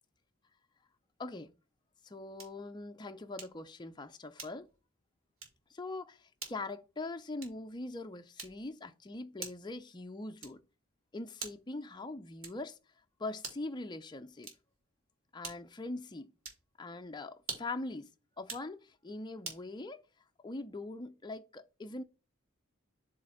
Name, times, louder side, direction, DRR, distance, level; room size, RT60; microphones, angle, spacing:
voice 1, 1.2-1.5 2.0-4.7 5.7-10.6 11.1-12.8 13.2-14.5 15.3-16.3 16.8-18.1 18.4-20.0 20.4-22.0, left 2 dB, 20° left, 0.5 m, -42 dB
sound 1, 2.4-2.7 3.4-3.7 4.4-4.8 5.4-5.7 6.4-6.7 7.4-7.7 8.4-8.8 9.4-9.8 10.4-10.8 11.4-11.8 12.4-12.8 13.4-13.8 14.4-14.8 15.4-15.8 16.4-16.7 17.4-17.8 18.4-18.7 19.4-19.7, right 4 dB, 80° right, 2.1 m, -46 dB
7.7 x 3.2 x 3.9 m
head